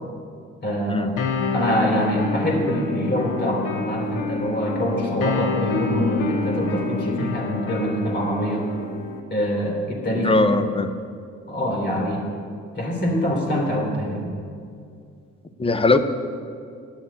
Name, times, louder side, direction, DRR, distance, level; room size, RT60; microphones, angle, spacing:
voice 1, 0.6-1.1 1.5-8.7 9.3-10.3 11.5-12.2 12.7-14.2, equal, 35° left, -1 dB, 3.2 m, -24 dB
sound 1, 1.2-9.2, left 4 dB, 85° left, 1.0 m, -28 dB
voice 2, 10.2-10.9 15.6-16.0, left 2 dB, 20° left, 10 dB, 0.7 m, -19 dB
9.7 x 7.1 x 8.5 m, 2.3 s
cardioid pair, 90°, 30 cm